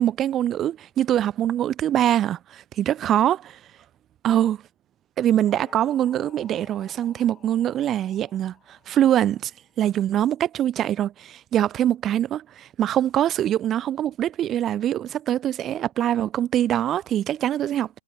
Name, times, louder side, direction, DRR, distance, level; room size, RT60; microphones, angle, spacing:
voice 1, 0.0-3.6 4.2-4.6 5.2-9.5 9.8-17.9, right 11 dB, 25° right, 0.5 m, -23 dB
sound 1, 5.5-9.7, left 8 dB, 20° left, 3.2 m, -52 dB
hypercardioid pair, 125°, 0 cm